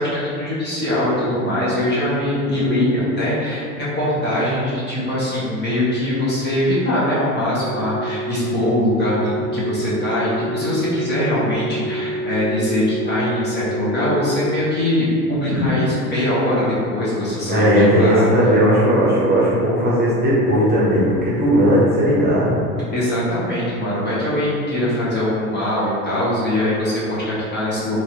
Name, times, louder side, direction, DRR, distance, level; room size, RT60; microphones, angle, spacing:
voice 1, 0.0-18.3 22.9-28.0, left 1 dB, 20° left, -8 dB, 1.2 m, -22 dB
sound 1, 7.6-14.6, right 1 dB, 45° left, 1.0 m, -28 dB
voice 2, 17.5-22.6, equal, 20° right, -7 dB, 1.1 m, -16 dB
4.5 x 2.9 x 2.8 m, 2.3 s
hypercardioid pair, 90°, 47 cm